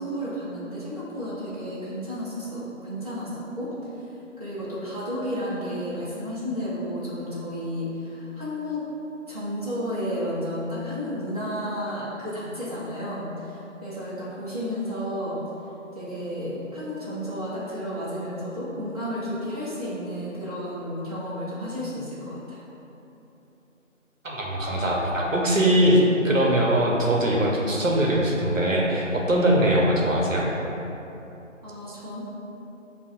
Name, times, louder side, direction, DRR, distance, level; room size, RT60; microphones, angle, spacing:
voice 1, 0.0-3.7 4.4-8.8 9.3-13.6 13.8-15.4 15.9-22.6 31.6-32.2, equal, 30° right, -11 dB, 0.7 m, -32 dB
voice 2, 24.2-30.5, right 1 dB, 75° right, -2 dB, 0.8 m, -21 dB
6.6 x 2.4 x 2.5 m, 3.0 s
figure-of-eight pair, 160°, 39 cm